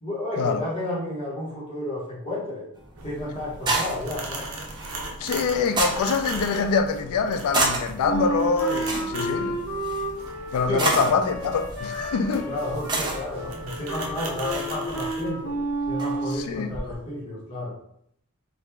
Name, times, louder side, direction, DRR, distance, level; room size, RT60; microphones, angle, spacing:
voice 1, 0.0-2.7 3.0-4.5 10.7-11.1 12.5-15.5 15.9-17.8, left 1 dB, 25° left, 1.1 m, -31 dB
sound 1, 2.8-16.9, right 2 dB, 20° right, 0.5 m, -32 dB
sound 2, 3.0-15.3, right 2 dB, 70° right, 0.6 m, -39 dB
voice 2, 5.2-9.6 10.5-12.5 16.3-16.7, left 5 dB, 85° left, 0.3 m, -25 dB
Wind instrument woodwind instrument, 8.0-16.5, right 1 dB, 55° left, 0.9 m, -31 dB
2.9 x 2.4 x 3.4 m
head